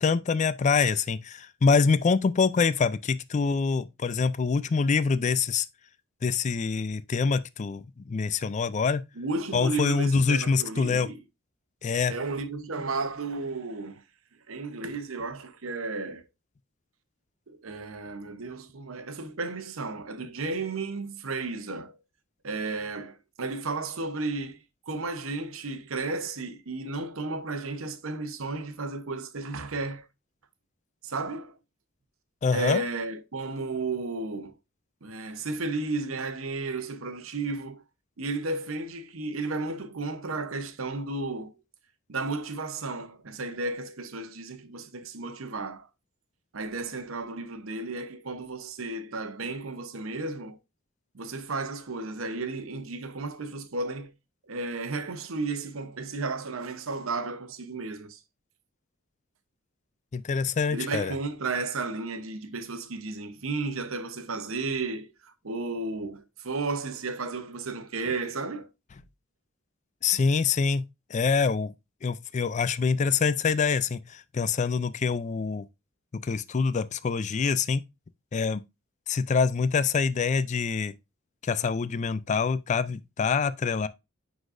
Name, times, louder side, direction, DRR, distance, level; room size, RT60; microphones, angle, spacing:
voice 1, 0.0-5.7 6.2-9.0 9.5-11.1 11.8-12.1 32.4-32.8 60.1-61.1 70.0-70.8 71.1-71.7 72.0-75.7 76.1-77.8 78.3-78.6 79.1-80.9 81.4-83.9, left 5 dB, 35° left, 0.4 m, -25 dB
voice 2, 9.2-11.2 12.1-14.0 14.5-16.2 17.5-22.0 22.4-24.6 24.9-30.0 31.0-31.6 32.5-34.6 35.0-37.8 38.2-41.5 42.1-45.9 46.5-50.6 51.1-54.1 54.5-58.2 60.7-68.7, right 3 dB, 80° right, 0.9 m, -33 dB
9.7 x 4.0 x 2.5 m
head